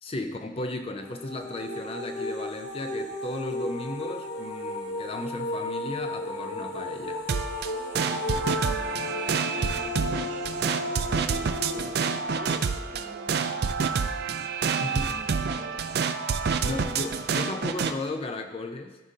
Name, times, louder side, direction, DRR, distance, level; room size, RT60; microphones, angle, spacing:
voice 1, 0.0-7.2 14.8-15.1 16.6-19.0, left 2 dB, 30° left, 5 dB, 0.4 m, -35 dB
sound 1, 1.0-13.9, left 2 dB, 60° left, 1.1 m, -35 dB
sound 2, 7.3-17.9, right 5 dB, 55° right, 0.4 m, -28 dB
voice 2, 7.7-14.0 14.6-15.8, right 1 dB, 35° right, 1 dB, 0.9 m, -47 dB
13.0 x 5.1 x 2.7 m, 1.2 s
head